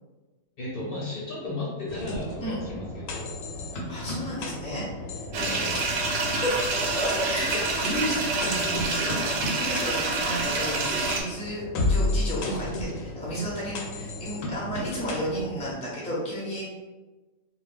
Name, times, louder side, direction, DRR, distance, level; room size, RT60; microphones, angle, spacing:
voice 1, 0.6-3.3 5.3-5.8, left 2 dB, 55° left, -5 dB, 0.7 m, -35 dB
sound 1, 1.9-15.7, left 2 dB, 80° left, 0.9 m, -33 dB
voice 2, 3.9-5.2 5.5-5.6 6.1-6.6 6.9-16.7, equal, 10° left, -6 dB, 0.4 m, -33 dB
sound 2, 5.3-11.2, right 3 dB, 75° right, 0.9 m, -27 dB
2.3 x 2.2 x 3.2 m, 1.2 s
omnidirectional pair, 1.4 m